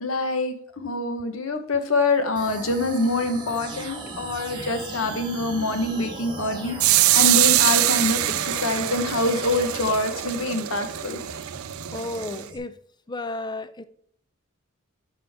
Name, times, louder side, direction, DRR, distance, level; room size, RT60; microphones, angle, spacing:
voice 1, 0.0-11.2, left 2 dB, 70° left, 7 dB, 1.1 m, -25 dB
sound 1, 2.3-12.6, right 2 dB, 20° right, 1.5 m, -38 dB
sound 2, 6.8-12.4, right 15 dB, 80° right, 0.4 m, -23 dB
voice 2, 11.9-12.8 13.1-13.8, left 2 dB, 20° left, 12 dB, 0.4 m, -32 dB
11.0 x 5.4 x 3.5 m, 0.63 s
head